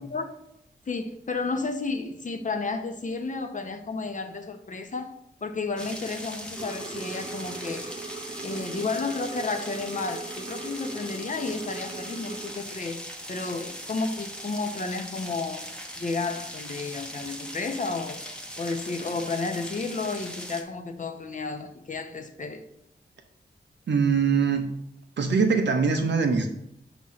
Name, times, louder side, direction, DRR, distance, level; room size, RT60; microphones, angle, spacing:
voice 1, 0.9-7.9 8.4-13.0 13.3-15.6 16.0-18.2 18.6-22.6, left 3 dB, 45° left, 0.7 m, -32 dB
sound 1, 5.8-20.6, equal, 5° left, 0.8 m, -40 dB
sound 2, 6.6-12.6, right 4 dB, 25° right, 0.6 m, -40 dB
voice 2, 23.9-24.6 25.2-26.5, right 5 dB, 90° right, 0.8 m, -22 dB
6.2 x 3.0 x 5.5 m
wide cardioid pair, 100°, 18 cm